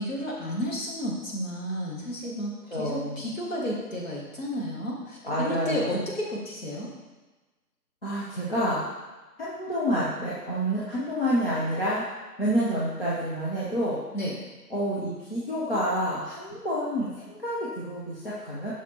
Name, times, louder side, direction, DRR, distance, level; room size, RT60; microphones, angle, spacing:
voice 1, 0.0-6.9 14.1-14.4, equal, 50° left, -4 dB, 2.0 m, -32 dB
voice 2, 2.7-3.2 5.2-6.0 8.0-8.8 9.4-12.0 12.4-14.0 14.7-18.7, equal, 35° left, -8 dB, 1.0 m, -28 dB
6.6 x 5.9 x 3.0 m, 1.2 s
figure-of-eight pair, 160°, 49 cm